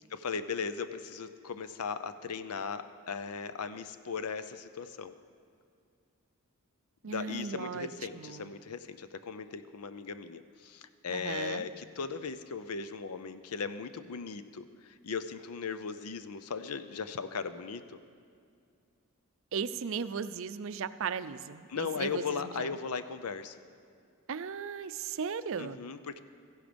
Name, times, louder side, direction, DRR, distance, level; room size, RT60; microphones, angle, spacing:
voice 1, 0.1-5.1 7.0-18.0 21.7-23.6 25.6-26.2, left 5 dB, 90° left, 12 dB, 0.6 m, -38 dB
voice 2, 7.0-8.5 11.1-11.7 19.5-22.8 24.3-25.8, right 6 dB, 60° right, 13 dB, 0.4 m, -37 dB
14.5 x 11.0 x 5.2 m, 2.4 s
head